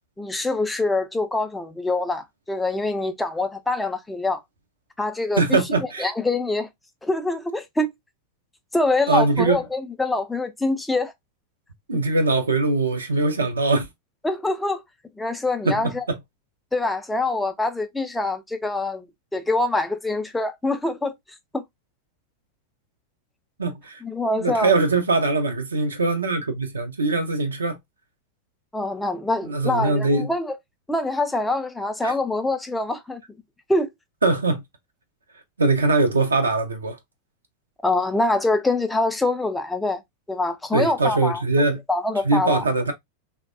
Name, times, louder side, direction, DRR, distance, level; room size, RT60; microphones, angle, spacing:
voice 1, 0.2-4.4 5.0-5.6 6.0-6.7 7.0-7.9 8.7-11.1 14.2-14.8 15.2-16.0 16.7-19.1 19.3-21.1 21.5-21.6 24.0-24.7 28.7-30.5 30.9-33.2 33.7-33.9 37.8-40.0 40.3-41.4 41.9-42.6, left 2 dB, 5° left, 0.5 m, -24 dB
voice 2, 5.4-6.1 9.1-9.6 11.9-13.9 15.6-16.2 23.6-24.0 24.4-27.8 29.4-30.3 32.0-32.1 34.2-34.6 35.6-37.0 40.7-41.8 42.2-42.9, right 3 dB, 75° right, 0.5 m, -22 dB
3.2 x 2.1 x 2.4 m
figure-of-eight pair, 90°, 0 cm